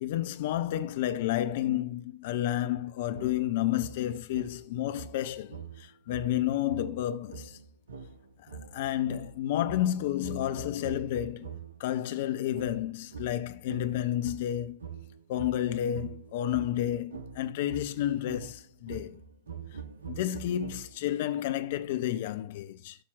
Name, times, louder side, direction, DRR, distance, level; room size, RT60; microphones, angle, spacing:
voice 1, 0.0-7.6 8.4-11.5 11.8-14.8 15.3-19.2 20.1-23.0, left 12 dB, 55° left, 0.6 m, -31 dB
sound 1, 3.1-11.9 12.5-21.2, right 6 dB, 70° right, 0.9 m, -45 dB
12.5 x 5.7 x 2.4 m
figure-of-eight pair, 90°, 0 cm